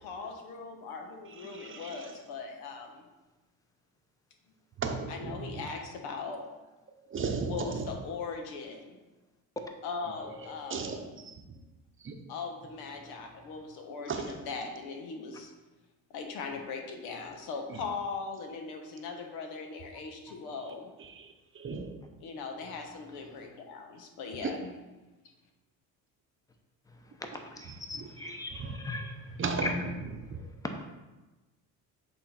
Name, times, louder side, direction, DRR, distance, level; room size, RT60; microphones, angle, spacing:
voice 1, 0.0-3.0 5.1-6.4 7.5-9.0 9.8-11.0 12.3-15.5 16.1-20.9 22.2-24.7, left 4 dB, 85° left, 3 dB, 1.2 m, -39 dB
voice 2, 1.3-2.1 4.8-5.7 7.0-7.9 10.0-11.6 12.0-12.2 14.0-14.4 17.7-17.8 21.0-22.0 24.4-24.6 27.6-28.9 29.4-30.5, right 4 dB, 35° right, 4 dB, 0.8 m, -37 dB
voice 3, 26.9-29.8 30.6-30.8, left 2 dB, 10° left, 4 dB, 0.7 m, -39 dB
8.2 x 3.8 x 4.3 m, 1.1 s
cardioid pair, 115°, 37 cm